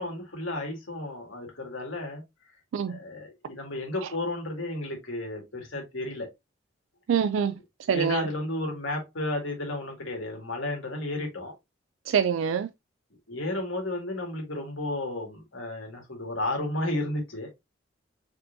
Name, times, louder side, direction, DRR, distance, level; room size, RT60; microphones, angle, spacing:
voice 1, 0.0-2.2 2.9-6.3 7.9-11.5 13.3-17.5, left 2 dB, 90° left, 2.0 m, -33 dB
voice 2, 7.1-7.5 7.9-8.3 12.1-12.7, right 7 dB, 75° right, 0.3 m, -25 dB
4.5 x 3.8 x 2.5 m
head